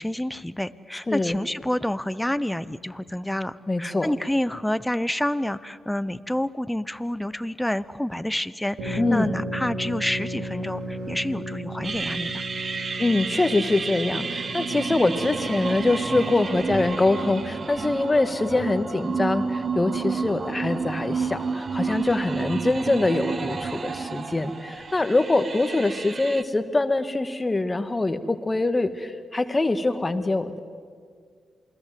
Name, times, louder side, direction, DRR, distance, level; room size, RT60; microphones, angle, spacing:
voice 1, 0.0-12.4, left 1 dB, 10° left, 15 dB, 1.0 m, -28 dB
voice 2, 3.7-4.1 9.0-9.3 13.0-30.6, left 2 dB, 25° left, 10 dB, 1.9 m, -24 dB
sound 1, 8.8-16.3, right 1 dB, 80° right, 4.3 m, -35 dB
sound 2, 11.8-26.4, right 4 dB, 50° right, 1.3 m, -31 dB
28.0 x 21.0 x 7.9 m, 2.1 s
supercardioid pair, 45°, 0 cm